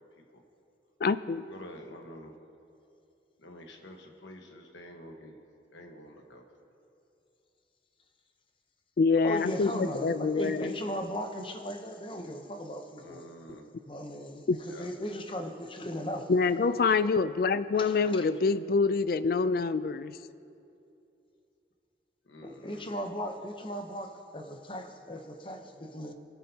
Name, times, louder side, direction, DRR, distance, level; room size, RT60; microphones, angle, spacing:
voice 1, 0.1-0.4 1.5-2.3 3.4-5.4 5.7-6.4 13.0-13.7 14.6-14.9 22.2-22.9, left 1 dB, 90° left, 3 dB, 1.3 m, -48 dB
voice 2, 1.0-1.4 9.0-10.7 14.5-14.6 16.3-20.2, left 4 dB, 55° left, 15 dB, 0.3 m, -26 dB
voice 3, 9.2-13.2 13.8-16.5 16.8-16.9 17.7-18.3 22.4-26.1, equal, 30° left, 5 dB, 0.8 m, -37 dB
23.0 x 8.5 x 2.8 m, 2.6 s
head